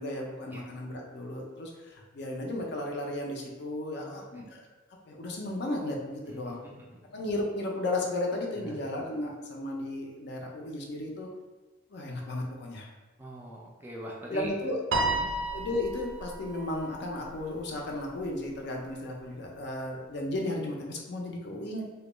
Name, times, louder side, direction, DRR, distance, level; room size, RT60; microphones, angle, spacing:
voice 1, 0.0-4.6 5.1-6.6 7.1-11.3 11.9-12.9 14.3-14.8 15.5-21.8, left 1 dB, 60° left, 0 dB, 0.4 m, -34 dB
voice 2, 3.9-4.4 6.3-7.0 8.6-8.8 13.2-14.5 15.1-15.3, equal, 10° right, -4 dB, 0.3 m, -43 dB
Piano, 14.9-17.4, right 2 dB, 85° right, 0.4 m, -32 dB
2.2 x 2.1 x 2.9 m, 1.2 s
head